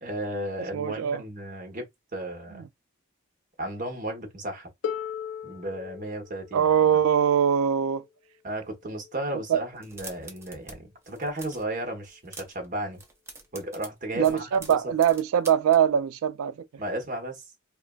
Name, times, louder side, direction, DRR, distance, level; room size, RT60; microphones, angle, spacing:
voice 1, 0.0-1.9 2.1-2.6 3.6-4.7 5.4-7.0 8.4-13.0 13.5-14.8 16.8-17.4, right 1 dB, 40° right, 0.9 m, -34 dB
voice 2, 0.7-1.2 2.6-2.7 6.5-8.0 9.5-9.6 14.1-16.5, right 8 dB, 80° right, 0.3 m, -22 dB
Harp, 4.8-10.6 11.7-11.8, left 8 dB, 70° left, 0.3 m, -40 dB
sound 1, 9.8-10.8 11.0-11.7 12.0-12.7 12.9-15.8, right 3 dB, 10° right, 0.5 m, -44 dB
3.0 x 2.4 x 2.3 m
head